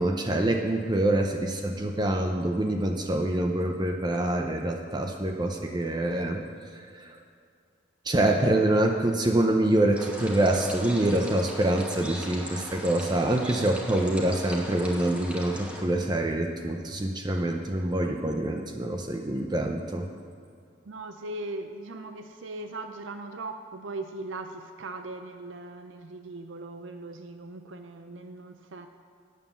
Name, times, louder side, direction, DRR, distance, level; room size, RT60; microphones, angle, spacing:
voice 1, 0.0-6.4 6.7-7.2 8.1-20.1, right 1 dB, 20° right, 3 dB, 0.6 m, -26 dB
sound 1, 10.0-15.8, equal, 5° right, 1.2 m, -40 dB
voice 2, 20.9-28.9, right 2 dB, 85° right, 7 dB, 0.5 m, -39 dB
9.2 x 7.5 x 6.9 m, 2.3 s
head